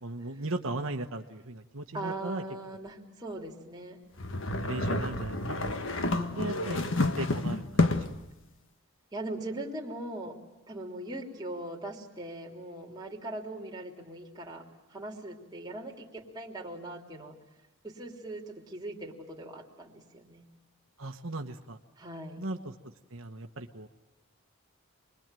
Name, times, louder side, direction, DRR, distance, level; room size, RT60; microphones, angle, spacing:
voice 1, 0.0-2.4 4.6-5.9 6.3-6.8 7.2-7.6 21.0-21.8 22.4-22.6 23.1-23.9, right 2 dB, 65° right, 5 dB, 1.3 m, -37 dB
voice 2, 1.9-4.0 6.1-6.9 9.1-17.4 17.8-20.5 22.0-22.5, right 1 dB, 20° right, -2 dB, 3.3 m, -41 dB
sound 1, 4.2-8.2, left 2 dB, 60° left, 1.5 m, -29 dB
28.5 x 22.0 x 9.1 m, 0.94 s
head